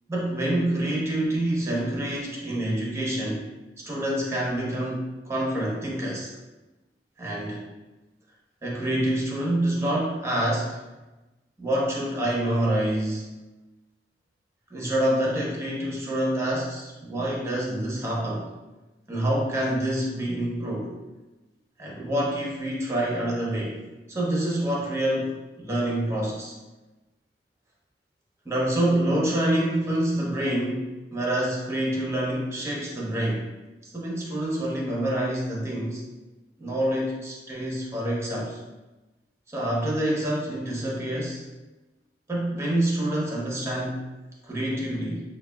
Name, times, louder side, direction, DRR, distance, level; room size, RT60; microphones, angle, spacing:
voice 1, 0.1-3.4 3.8-6.3 7.2-7.6 8.6-10.8 11.6-13.4 14.7-18.5 19.1-21.0 21.8-23.8 24.1-26.5 28.4-33.5 33.8-36.0 36.6-38.6 39.5-41.4 42.3-44.0 44.4-45.2, right 1 dB, 15° right, -4 dB, 0.8 m, -27 dB
5.7 x 2.2 x 2.2 m, 1.1 s
head